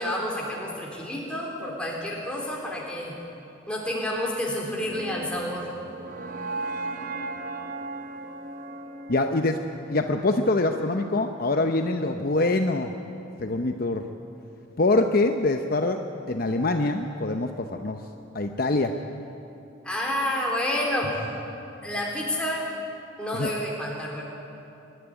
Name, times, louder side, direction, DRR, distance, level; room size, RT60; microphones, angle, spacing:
voice 1, 0.0-3.1 3.7-5.7 19.8-21.1 21.8-22.7 23.2-24.2, left 1 dB, 5° left, -3 dB, 3.8 m, -29 dB
sound 1, 4.8-10.9, right 2 dB, 45° right, 0.7 m, -37 dB
voice 2, 9.1-9.6 9.9-12.9 13.4-14.0 14.8-16.0 16.3-18.0 18.3-19.0 23.3-23.5, left 2 dB, 45° left, 5 dB, 0.8 m, -24 dB
23.0 x 12.5 x 9.8 m, 2.8 s
head